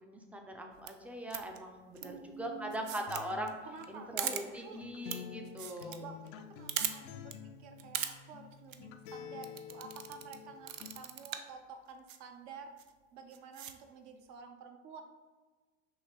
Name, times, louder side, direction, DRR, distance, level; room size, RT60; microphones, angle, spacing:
voice 1, 0.0-2.1 2.4-3.6 3.9-6.0, right 1 dB, 5° right, 3 dB, 0.5 m, -40 dB
sound 1, 0.7-0.9 1.3-1.6 2.0-2.1 2.7-3.2 3.5-3.6 3.8-3.9 4.2-4.4 5.1-5.2 5.5-6.0 6.3-6.4 6.7-6.9 7.3-7.4 7.8-8.1 8.5-8.8 9.4-10.4 10.7-11.5 12.1-12.2 12.8-12.9 13.3-13.7, right 10 dB, 80° right, 0.5 m, -38 dB
voice 2, 2.0-3.0 3.6-4.9 6.0-12.8 13.1-15.0, right 5 dB, 45° right, 6 dB, 0.7 m, -50 dB
Acoustic guitar, 3.1-11.1, left 8 dB, 55° left, 0.5 m, -49 dB
5.7 x 3.0 x 2.9 m, 1.3 s
hypercardioid pair, 80°, 38 cm